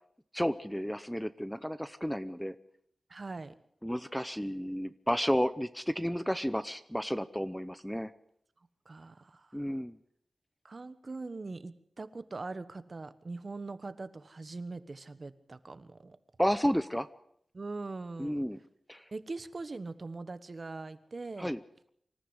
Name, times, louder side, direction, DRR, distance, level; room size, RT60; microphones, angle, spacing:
voice 1, 0.3-2.5 3.8-8.1 9.5-10.0 16.4-17.1 18.2-18.6 18.9-19.0 21.4-21.6, equal, 5° left, 12 dB, 0.8 m, -32 dB
voice 2, 3.1-3.5 8.8-9.7 10.6-16.2 17.5-18.4 19.1-21.5, right 3 dB, 45° right, 12 dB, 1.3 m, -42 dB
25.5 x 14.0 x 8.1 m, 0.71 s
wide cardioid pair, 110°, 0 cm